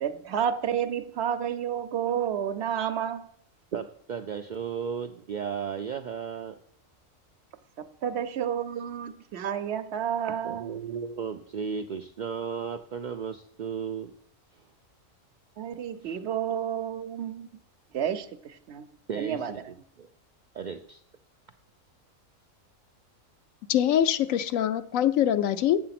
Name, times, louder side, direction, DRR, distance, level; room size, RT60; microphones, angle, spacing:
voice 1, 0.0-3.3 8.0-10.7 15.6-17.5 17.9-18.3 18.7-18.8 19.2-19.5, right 9 dB, 60° right, 0.8 m, -30 dB
voice 2, 3.7-6.6 10.4-14.1 16.0-16.2 19.1-19.6 20.0-20.1 20.5-21.0, right 6 dB, 85° right, 0.4 m, -34 dB
voice 3, 23.7-25.8, left 10 dB, 80° left, 1.0 m, -24 dB
7.6 x 7.6 x 5.8 m
omnidirectional pair, 1.4 m